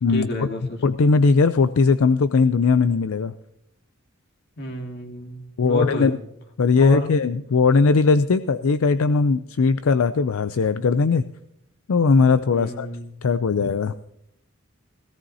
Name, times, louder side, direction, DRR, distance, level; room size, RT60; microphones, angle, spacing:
voice 1, 0.1-0.8 4.6-6.2 6.8-7.1 12.5-13.1, left 1 dB, 55° left, 2 dB, 2.1 m, -31 dB
voice 2, 0.8-3.3 5.6-6.1 6.6-11.2 11.9-12.9 13.2-13.9, left 4 dB, 75° left, 12 dB, 0.5 m, -19 dB
17.5 x 16.5 x 2.8 m, 0.75 s
head